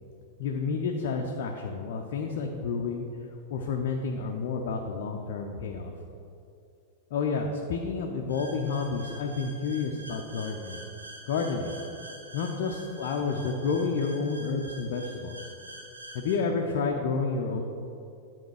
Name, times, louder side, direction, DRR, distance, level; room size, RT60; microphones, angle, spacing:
voice 1, 0.4-3.1 3.5-5.9 7.1-10.8 11.3-11.7 12.3-15.4 16.1-17.6, left 4 dB, 50° left, 1 dB, 0.5 m, -30 dB
sound 1, 8.3-16.4, right 1 dB, 80° right, 1.1 m, -46 dB
10.0 x 3.7 x 4.9 m, 2.6 s
figure-of-eight pair, 90°, 0 cm